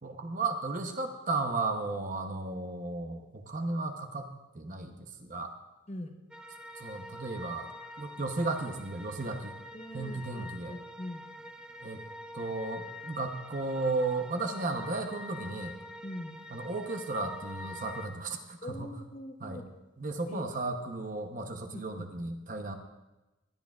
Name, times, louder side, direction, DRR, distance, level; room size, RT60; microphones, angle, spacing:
voice 1, 0.0-5.5 6.7-7.7 8.0-9.5 9.9-10.7 11.8-12.0 12.3-15.7 16.5-18.6 19.4-19.6 20.0-22.7, right 3 dB, 35° right, 5 dB, 0.8 m, -34 dB
voice 2, 5.9-6.2 9.7-11.3 16.0-16.4 18.6-19.7 20.3-20.4 21.7-22.0, left 1 dB, 30° left, 5 dB, 0.9 m, -42 dB
sound 1, 6.3-18.1, left 1 dB, 5° right, 0.4 m, -46 dB
19.5 x 11.0 x 2.4 m, 1.0 s
head